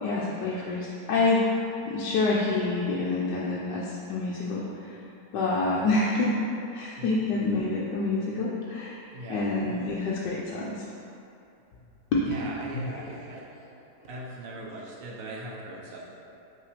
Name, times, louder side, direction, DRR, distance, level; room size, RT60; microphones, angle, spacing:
voice 1, 0.0-1.4 1.9-4.6 5.3-6.3 6.7-9.0 9.3-10.8 12.1-12.2 12.7-13.1, left 3 dB, 75° left, -6 dB, 1.3 m, -27 dB
voice 2, 9.1-9.5 12.2-13.4 14.1-16.0, right 1 dB, 50° right, -3 dB, 0.7 m, -39 dB
5.8 x 3.4 x 4.9 m, 2.7 s
omnidirectional pair, 1.9 m